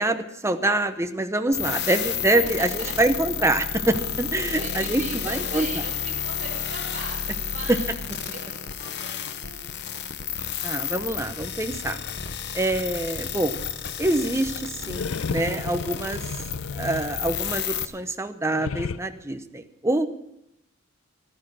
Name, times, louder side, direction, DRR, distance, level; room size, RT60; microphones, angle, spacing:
voice 1, 0.0-5.7 7.7-7.8 10.6-12.0 12.5-13.5 14.0-16.2 16.7-20.1, right 2 dB, 15° right, 8 dB, 0.8 m, -25 dB
sound 1, 1.5-17.8, left 7 dB, 55° left, 1.0 m, -31 dB
voice 2, 2.3-3.0 4.4-7.9 8.3-10.0, right 2 dB, 35° right, -2 dB, 6.3 m, -40 dB
sound 2, 14.8-17.8 18.5-19.0, left 5 dB, 70° left, 0.4 m, -33 dB
15.5 x 12.0 x 6.2 m, 0.83 s
head